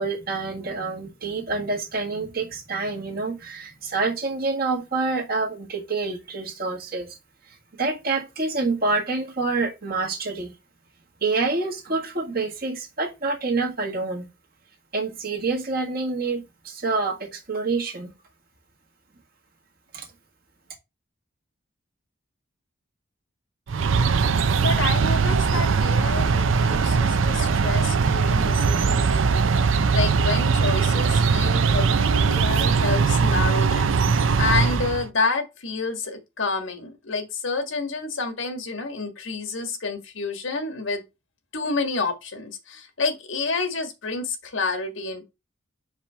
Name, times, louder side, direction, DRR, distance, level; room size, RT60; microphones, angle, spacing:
voice 1, 0.0-7.1 7.8-10.5 11.2-14.3 14.9-18.1 19.9-20.1, right 3 dB, 50° right, 1.6 m, -27 dB
sound 1, 23.7-35.1, right 5 dB, 80° right, 0.5 m, -20 dB
voice 2, 24.6-41.0 41.5-45.2, left 3 dB, 75° left, 1.5 m, -29 dB
5.0 x 3.4 x 5.5 m
head